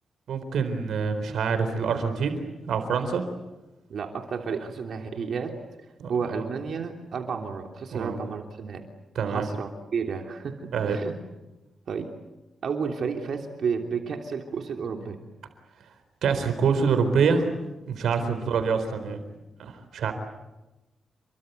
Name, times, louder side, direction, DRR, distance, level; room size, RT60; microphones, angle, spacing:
voice 1, 0.3-3.2 6.0-6.1 7.9-8.2 9.2-9.5 10.7-11.0 16.2-17.5 17.9-19.2 19.6-20.1, right 5 dB, 85° right, 8 dB, 4.2 m, -25 dB
voice 2, 3.9-5.6 6.1-8.8 9.3-10.5 10.8-11.2 11.9-12.1 12.6-15.2 18.2-18.5, right 5 dB, 65° right, 3 dB, 3.1 m, -31 dB
30.0 x 23.5 x 8.3 m, 1.0 s
cardioid pair, 115°, 0 cm